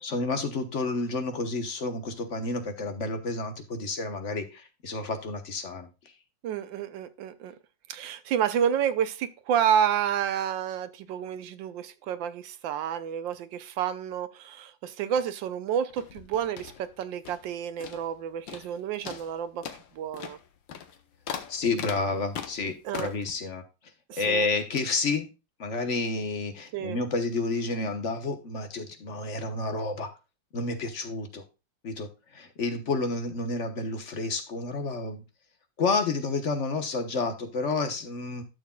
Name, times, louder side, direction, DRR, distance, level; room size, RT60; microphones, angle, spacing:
voice 1, 0.0-5.9 21.5-23.6 24.2-25.3 25.6-30.1 30.5-31.4 31.8-32.1 32.3-35.2 35.8-38.4, left 3 dB, 45° left, 1.3 m, -30 dB
voice 2, 6.4-7.5 7.9-19.6 19.9-20.4 22.8-23.1 24.1-24.5 26.7-27.0, right 9 dB, 85° right, 1.5 m, -29 dB
sound 1, 15.9-17.5 17.8-18.2 18.5-18.8 19.0-23.3, left 8 dB, 90° left, 1.7 m, -40 dB
12.5 x 6.6 x 2.3 m
omnidirectional pair, 2.0 m